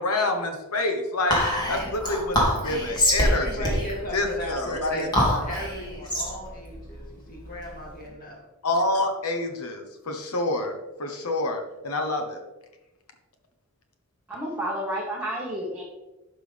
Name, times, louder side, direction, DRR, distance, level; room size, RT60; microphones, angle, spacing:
voice 1, 0.0-3.7 4.1-5.1 8.6-12.4, left 2 dB, 85° left, 5 dB, 1.1 m, -27 dB
Whispering, 1.3-8.0, equal, 20° left, 2.3 m, -26 dB
voice 2, 3.2-8.4, equal, 40° left, -2 dB, 2.5 m, -35 dB
voice 3, 14.3-15.8, right 1 dB, 10° right, -5 dB, 1.4 m, -30 dB
11.5 x 6.0 x 3.4 m, 1.1 s
head